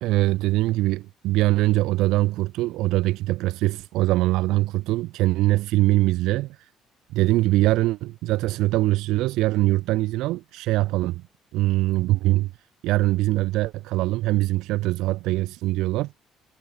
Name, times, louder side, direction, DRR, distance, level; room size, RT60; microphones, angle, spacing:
voice 1, 0.0-6.6 7.1-11.2 11.5-12.5 12.8-16.1, right 17 dB, 85° right, 1.1 m, -22 dB
cardioid pair, 180°, 0 cm